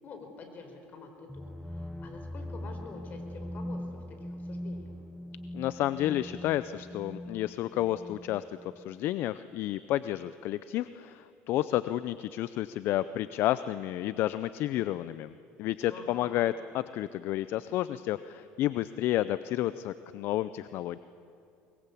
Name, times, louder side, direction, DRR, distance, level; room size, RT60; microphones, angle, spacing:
voice 1, 0.0-4.9 15.9-16.4, left 4 dB, 40° left, 4 dB, 4.8 m, -47 dB
sound 1, 1.3-9.0, left 1 dB, ahead, 0.7 m, -41 dB
voice 2, 5.5-21.0, left 13 dB, 60° left, 14 dB, 0.6 m, -31 dB
22.5 x 22.0 x 8.4 m, 2.6 s
supercardioid pair, 115°, 4 cm